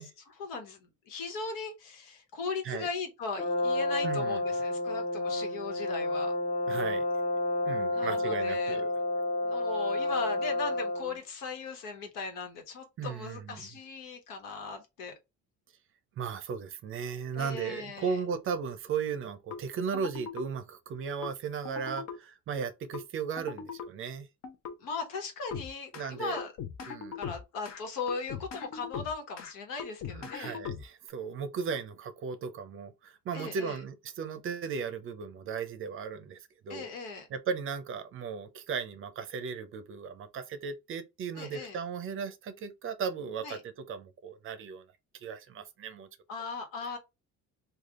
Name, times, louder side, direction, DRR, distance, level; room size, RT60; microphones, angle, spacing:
voice 1, 0.0-6.3 7.9-8.8 9.4-15.1 17.3-18.2 24.8-26.5 27.1-30.6 33.3-33.8 36.7-37.3 41.3-41.8 43.4-43.6 46.3-47.0, left 4 dB, 90° left, 1.3 m, -38 dB
Brass instrument, 3.4-11.2, left 2 dB, 20° left, 0.5 m, -30 dB
voice 2, 4.0-4.4 6.7-7.0 7.6-8.9 13.0-13.7 16.2-24.3 25.9-26.4 26.9-27.2 30.1-36.4 36.6-36.9 37.3-44.8 45.2-46.1, right 6 dB, 40° right, 0.5 m, -36 dB
sound 1, 19.5-19.6 19.9-20.5 21.2-21.3 21.7-22.2 22.9-23.0 23.4-23.9 24.4-24.7 25.5-26.1 26.4-27.8 28.1-29.5 29.8-31.1, left 7 dB, 55° left, 0.7 m, -40 dB
3.3 x 2.4 x 3.6 m
cardioid pair, 155°, 32 cm